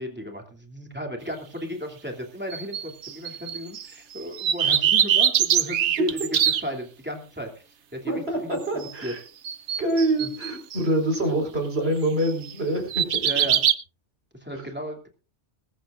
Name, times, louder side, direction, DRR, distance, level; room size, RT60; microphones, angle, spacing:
voice 1, 0.0-6.2 6.6-8.1 8.4-9.1 10.2-10.3 13.2-13.6 14.3-15.1, equal, 10° right, 1 dB, 2.9 m, -34 dB
sound 1, 2.5-3.9 4.2-6.6 8.8-9.1 9.4-10.8 12.2-12.5 12.9-13.7, right 9 dB, 75° right, 1.1 m, -23 dB
voice 2, 8.1-9.2 9.8-13.2 14.5-14.6, right 1 dB, 60° right, 3 dB, 4.9 m, -25 dB
21.0 x 14.5 x 2.6 m, 0.35 s
omnidirectional pair, 1.2 m